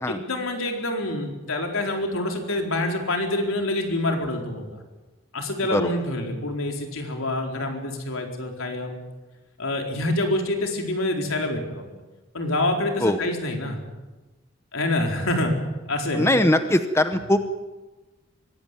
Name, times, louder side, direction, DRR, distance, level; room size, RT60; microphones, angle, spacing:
voice 1, 0.1-4.7 5.3-9.0 9.6-12.0 12.3-13.8 14.7-15.6 15.9-16.4, left 1 dB, 85° left, 2 dB, 4.3 m, -26 dB
voice 2, 16.1-17.4, left 1 dB, 10° left, 9 dB, 0.9 m, -21 dB
24.0 x 16.5 x 9.2 m, 1.2 s
head